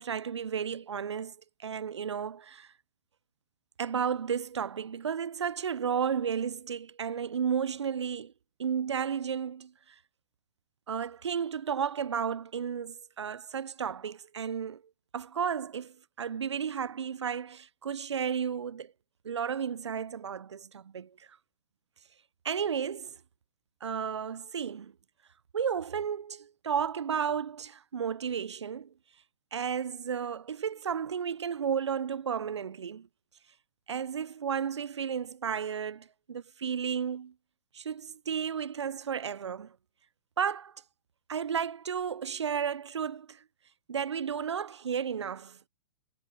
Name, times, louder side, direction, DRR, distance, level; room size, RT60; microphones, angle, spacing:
voice 1, 0.0-1.3 1.6-2.7 3.8-8.3 8.6-9.7 10.9-14.8 15.1-18.9 19.2-21.1 22.4-23.1 23.8-24.9 25.5-28.9 29.5-33.1 33.9-37.3 37.7-39.7 40.4-40.7 41.3-43.4 43.9-45.6, right 7 dB, 90° right, 0.5 m, -33 dB
hypercardioid pair, 120°, 14 cm